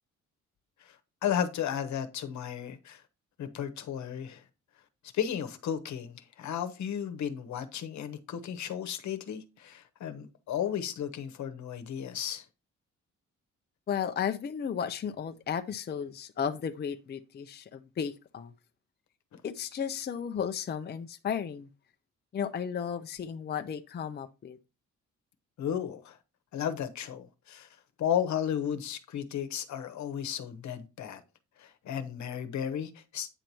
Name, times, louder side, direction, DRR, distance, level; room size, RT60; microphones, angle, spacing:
voice 1, 1.2-3.0 3.4-4.4 5.1-12.4 19.3-19.4 25.6-26.2 26.5-27.7 28.0-31.2 31.6-33.3, left 9 dB, 70° left, 1.1 m, -34 dB
voice 2, 13.9-18.5 19.4-21.7 22.3-24.6, left 7 dB, 35° left, 0.5 m, -34 dB
8.9 x 3.0 x 5.3 m
cardioid pair, 90°, 30 cm